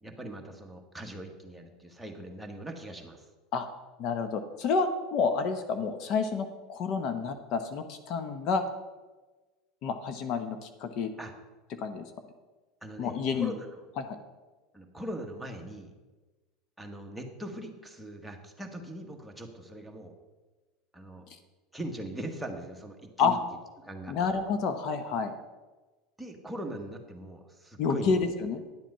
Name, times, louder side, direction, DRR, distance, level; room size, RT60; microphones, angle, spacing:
voice 1, 0.0-3.3 11.2-11.3 12.8-13.8 14.7-15.9 16.8-20.1 20.9-21.3 21.7-23.4 23.8-24.1 26.2-28.2, right 1 dB, ahead, 1 dB, 1.4 m, -41 dB
voice 2, 4.0-8.6 9.8-11.1 11.7-12.1 13.0-13.5 14.0-14.2 23.2-23.4 24.1-25.3 27.8-28.6, left 5 dB, 55° left, 8 dB, 0.9 m, -29 dB
10.5 x 7.5 x 5.5 m, 1.2 s
supercardioid pair, 120°, 0 cm